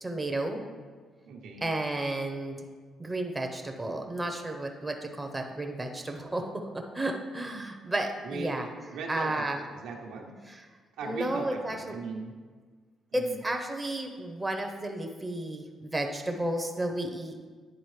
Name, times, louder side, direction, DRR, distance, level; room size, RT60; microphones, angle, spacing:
voice 1, 0.0-0.6 1.6-2.6 3.0-8.7 9.1-9.6 11.0-12.0 13.1-17.5, right 1 dB, 15° right, 3 dB, 0.7 m, -32 dB
voice 2, 1.2-1.7 8.2-10.4 11.0-12.4 13.1-13.4, right 3 dB, 85° right, 0 dB, 0.8 m, -39 dB
10.0 x 3.8 x 3.2 m, 1.5 s
cardioid pair, 90°, 0 cm